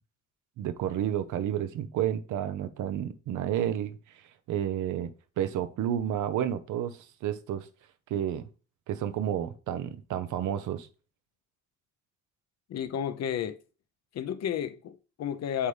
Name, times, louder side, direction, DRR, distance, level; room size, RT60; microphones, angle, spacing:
voice 1, 0.6-4.0 4.5-7.7 8.1-8.4 8.9-10.9, right 10 dB, 80° right, 0.7 m, -31 dB
voice 2, 12.7-13.6 14.1-15.7, left 9 dB, 60° left, 0.7 m, -32 dB
8.3 x 3.6 x 3.3 m
cardioid pair, 90°, 30 cm